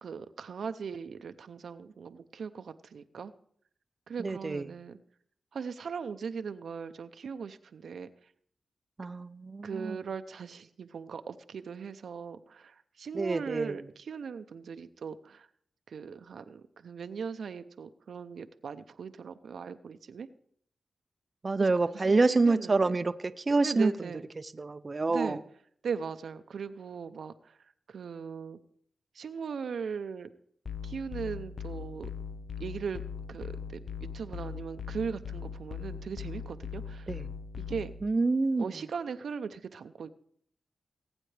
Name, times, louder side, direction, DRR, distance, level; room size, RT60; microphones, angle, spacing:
voice 1, 0.0-3.3 4.1-5.0 5.5-8.1 9.6-15.5 15.9-20.3 21.6-21.7 22.0-22.9 23.6-24.2 25.1-25.4 25.8-27.6 27.9-28.6 29.1-30.3 30.8-32.1 32.6-33.0 33.3-37.1 37.6-37.9 38.6-40.1, right 6 dB, 80° right, 10 dB, 0.6 m, -39 dB
voice 2, 4.2-4.7 9.0-10.0 13.1-13.8 21.4-23.9 24.6-25.4 37.1-37.3 38.0-38.7, right 3 dB, 40° right, 10 dB, 0.5 m, -27 dB
sound 1, 30.7-38.0, left 6 dB, 50° left, 0.7 m, -40 dB
19.5 x 8.9 x 3.3 m, 0.63 s
cardioid pair, 65°, 0 cm